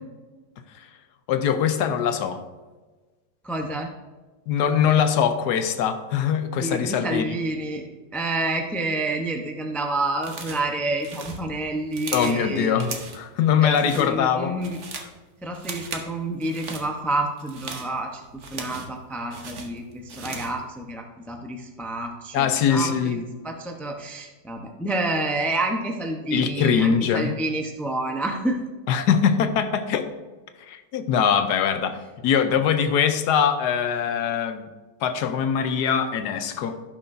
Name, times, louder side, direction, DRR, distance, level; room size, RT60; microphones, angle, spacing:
voice 1, 1.3-2.4 4.5-7.3 12.1-14.5 14.9-15.1 22.3-23.2 26.3-27.3 28.9-30.1 30.7-32.0 32.2-34.7 35.0-36.8, left 7 dB, 80° left, 9 dB, 1.3 m, -22 dB
voice 2, 3.4-3.9 6.6-12.9 13.6-14.8 15.4-28.7, right 2 dB, ahead, 2 dB, 0.4 m, -29 dB
sound 1, 10.2-10.7 11.0-12.4 12.8-13.3 13.6-14.1 14.5-15.1 15.5-16.1 16.4-16.9 17.4-19.0 19.3-20.6, right 4 dB, 50° right, 1.2 m, -37 dB
16.5 x 6.1 x 2.6 m, 1.3 s
omnidirectional pair, 1.8 m